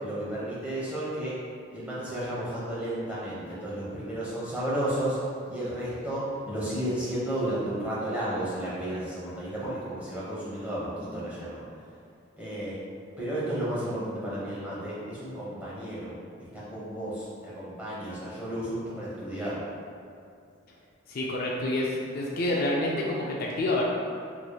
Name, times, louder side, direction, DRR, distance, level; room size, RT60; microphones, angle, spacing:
voice 1, 0.0-1.3 1.7-5.2 5.5-11.6 12.4-12.8 13.2-16.1 16.5-19.6, right 1 dB, 5° right, -9 dB, 0.9 m, -32 dB
voice 2, 21.1-23.8, left 1 dB, 45° left, -3 dB, 0.4 m, -28 dB
4.8 x 3.0 x 2.2 m, 2.4 s
head